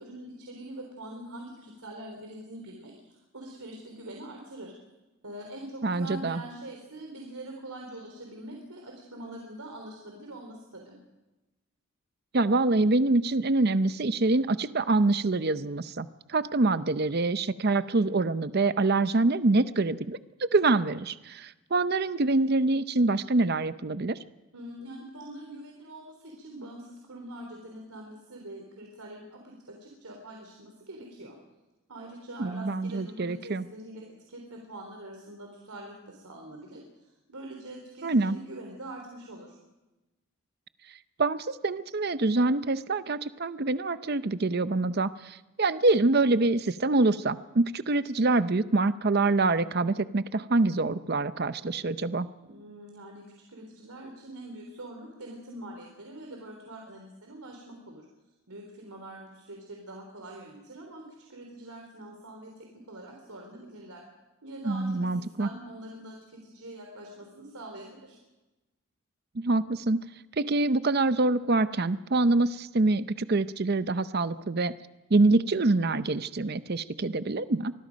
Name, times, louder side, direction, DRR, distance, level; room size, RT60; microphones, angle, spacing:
voice 1, 0.0-4.7 5.2-11.0 24.5-31.4 31.9-39.6 52.4-58.1 58.5-64.1 64.4-68.2, right 1 dB, 90° right, 1 dB, 3.6 m, -44 dB
voice 2, 5.8-6.4 12.3-24.2 32.4-33.6 38.0-38.4 41.2-52.3 64.6-65.5 69.3-70.0 70.3-74.7 75.1-77.7, right 2 dB, 45° right, 13 dB, 0.6 m, -25 dB
25.5 x 20.5 x 5.2 m, 1.0 s
head